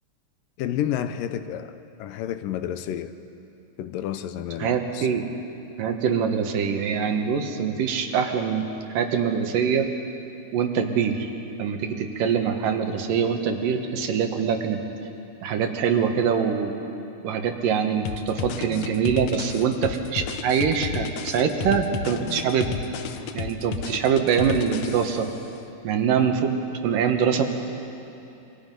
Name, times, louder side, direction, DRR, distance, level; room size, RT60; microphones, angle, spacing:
voice 1, 0.6-3.2 3.8-5.1, left 10 dB, 90° left, 10 dB, 2.5 m, -30 dB
voice 2, 4.6-5.3 5.8-8.7 8.9-9.9 10.5-11.3 11.6-14.8 15.4-16.7 17.2-22.7 23.3-25.3 25.8-27.4, right 7 dB, 80° right, 5 dB, 3.0 m, -24 dB
sound 1, 18.1-25.4, left 7 dB, 70° left, 1.8 m, -33 dB
27.0 x 24.5 x 5.5 m, 2.8 s
omnidirectional pair, 3.9 m